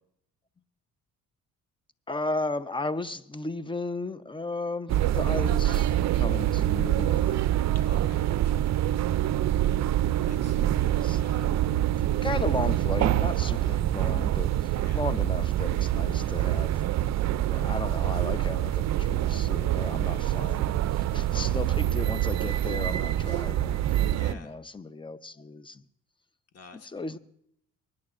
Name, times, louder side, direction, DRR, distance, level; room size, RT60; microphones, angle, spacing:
voice 1, 2.1-7.5 10.6-11.6 11.9-16.8 17.5-24.0 24.3-25.8 26.8-27.2, left 3 dB, 15° left, 13 dB, 0.8 m, -35 dB
sound 1, 4.9-24.3, right 13 dB, 65° right, 0.5 m, -25 dB
voice 2, 7.8-8.5 10.2-10.6 11.1-11.5 14.8-15.1 21.3-21.7 23.2-23.5 24.1-24.6 26.5-27.2, left 5 dB, 55° left, 5 dB, 1.7 m, -51 dB
24.5 x 10.5 x 2.5 m, 0.71 s
cardioid pair, 90°, 30 cm